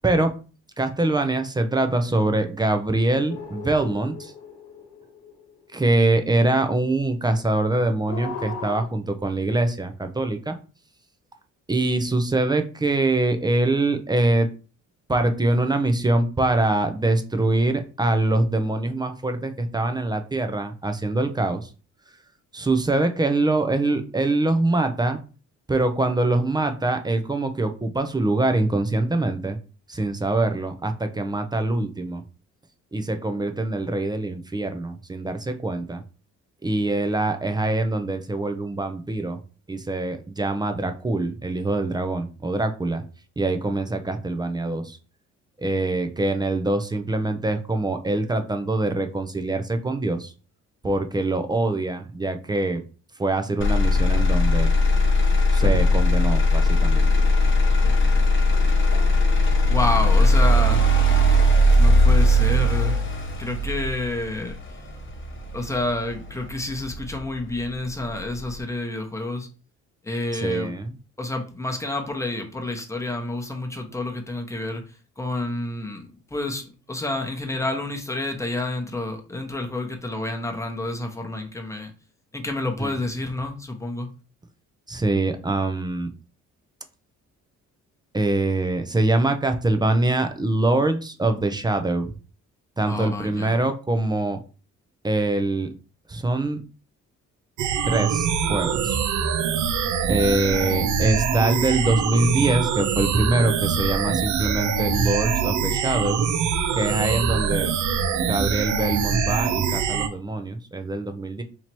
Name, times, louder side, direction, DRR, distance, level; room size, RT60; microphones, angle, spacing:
voice 1, 0.8-4.3 5.7-10.6 11.7-14.5 15.1-21.7 22.5-25.2 25.7-29.6 29.9-32.2 32.9-36.0 36.6-39.4 39.7-43.0 43.4-45.0 45.6-50.3 50.8-52.8 53.2-54.7 55.3-57.1 70.3-71.0 82.8-82.9 84.9-86.1 88.1-92.1 92.8-94.4 95.0-95.7 96.1-96.6 97.8-99.0 100.1-106.2 106.7-107.7 108.2-111.4, right 2 dB, 15° right, 7 dB, 0.5 m, -24 dB
sound 1, 3.3-5.8 8.1-8.8, left 4 dB, 85° left, 1.0 m, -37 dB
Motor vehicle (road), 53.6-67.6 68.1-68.6, left 1 dB, 40° left, 1.1 m, -19 dB
voice 2, 59.7-60.8 61.8-63.0 63.4-64.6 65.5-69.5 70.0-70.7 71.2-74.8 75.2-81.9 82.3-84.1 92.9-93.6, left 2 dB, 10° left, 3 dB, 0.9 m, -29 dB
sound 2, 97.6-110.1, right 6 dB, 70° right, 0.6 m, -24 dB
2.9 x 2.8 x 4.5 m, 0.36 s
cardioid pair, 90°, 30 cm